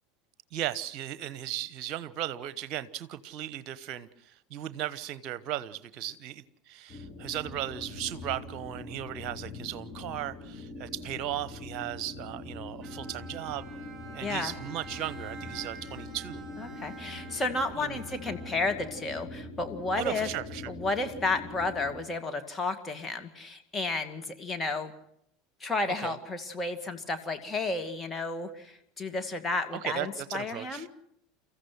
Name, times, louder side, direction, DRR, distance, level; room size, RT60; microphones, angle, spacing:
voice 1, 0.5-13.7 14.1-16.4 17.8-18.0 20.0-20.7 26.0-26.2 29.8-30.9, right 12 dB, 50° right, 15 dB, 1.1 m, -36 dB
sound 1, 6.9-22.0, left 3 dB, 35° left, 3.7 m, -43 dB
Bowed string instrument, 12.8-19.2, right 7 dB, 15° right, 5.6 m, -48 dB
voice 2, 14.2-14.5 16.6-20.3 20.7-24.9 25.6-30.9, left 3 dB, 20° left, 6 dB, 2.2 m, -32 dB
30.0 x 14.5 x 6.2 m, 0.75 s
figure-of-eight pair, 75°, 0 cm